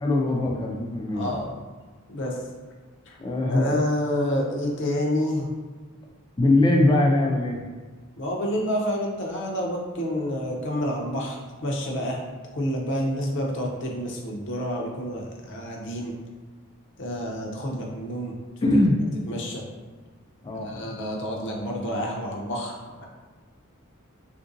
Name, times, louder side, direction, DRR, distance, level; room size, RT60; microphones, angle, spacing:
voice 1, 0.0-1.5 3.2-3.8 6.4-7.6 18.6-19.0 20.4-20.8, left 2 dB, 20° left, 0 dB, 0.3 m, -22 dB
voice 2, 1.1-1.5 2.1-2.4 3.1-3.2 3.5-5.5 8.2-12.2 12.5-16.1 17.0-18.7 19.3-19.6 20.5-23.1, equal, 60° left, -1 dB, 0.6 m, -29 dB
3.6 x 2.5 x 2.5 m, 1.4 s
head